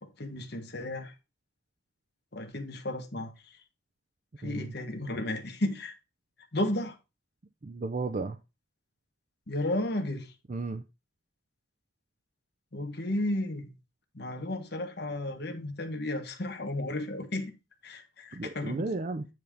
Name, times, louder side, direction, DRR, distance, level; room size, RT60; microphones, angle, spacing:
voice 1, 0.0-1.1 2.3-3.6 4.4-5.9 6.5-7.0 9.5-10.3 12.7-13.7 14.1-17.5 17.8-18.9, left 1 dB, 55° left, 1.4 m, -33 dB
voice 2, 4.4-4.7 7.6-8.4 10.5-10.8 18.3-19.3, right 3 dB, 40° right, 0.5 m, -34 dB
9.4 x 3.6 x 5.1 m
head